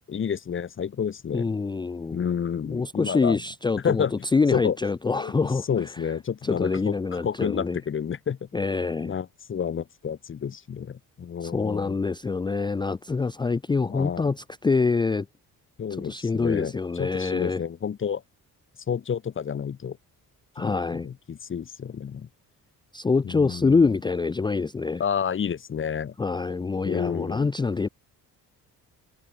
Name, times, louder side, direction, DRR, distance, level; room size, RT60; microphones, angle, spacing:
voice 1, 0.0-1.5 2.1-3.4 3.8-4.3 4.5-4.8 5.1-8.5 9.0-12.0 13.9-14.3 15.8-18.2 18.9-20.0 20.6-22.3 23.2-23.9 25.0-26.1 26.8-27.5, left 7 dB, 35° left, 2.5 m, -30 dB
voice 2, 1.3-2.2 2.6-4.0 4.3-5.6 6.4-7.8 8.5-9.2 11.4-15.3 16.0-17.6 20.6-21.1 22.9-25.0 26.2-27.9, left 4 dB, 15° left, 0.5 m, -25 dB
cardioid pair, 160°, 34 cm